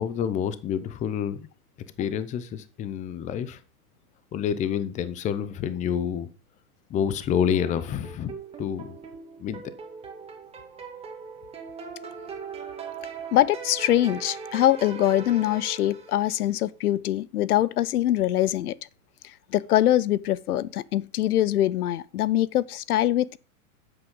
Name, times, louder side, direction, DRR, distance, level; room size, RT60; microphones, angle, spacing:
voice 1, 0.0-1.5 2.0-3.6 4.3-6.3 6.9-9.0 9.4-9.6, left 8 dB, 15° left, 0.6 m, -28 dB
sound 1, 7.5-16.4, right 6 dB, 15° right, 2.2 m, -40 dB
voice 2, 13.3-18.8 19.5-23.4, left 13 dB, 90° left, 0.7 m, -23 dB
9.7 x 8.2 x 3.8 m
hypercardioid pair, 140°, 44 cm